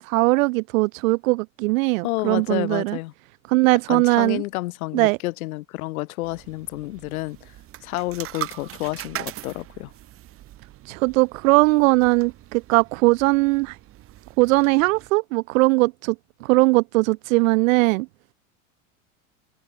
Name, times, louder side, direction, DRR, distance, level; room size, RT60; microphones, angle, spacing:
voice 1, 0.0-3.0 3.5-4.4 4.9-5.2 10.9-13.8 14.4-16.2 16.4-18.1, right 24 dB, 70° right, 0.6 m, -20 dB
voice 2, 2.0-3.1 3.9-7.4 7.8-9.9, left 19 dB, 80° left, 0.5 m, -30 dB
sound 1, 6.2-15.1, right 14 dB, 35° right, 0.7 m, -40 dB
hypercardioid pair, 95°, 42 cm